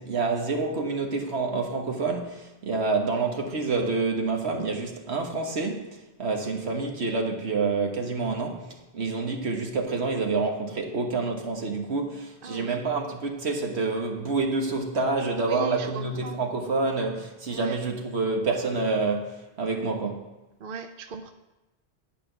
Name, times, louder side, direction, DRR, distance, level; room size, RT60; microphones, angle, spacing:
voice 1, 0.0-8.7 8.9-20.3, right 3 dB, 80° right, 1.6 m, -28 dB
voice 2, 12.4-12.8 15.4-16.4 17.5-17.8 20.6-21.3, right 4 dB, 60° right, 0.8 m, -37 dB
11.0 x 5.0 x 7.8 m
omnidirectional pair, 1.1 m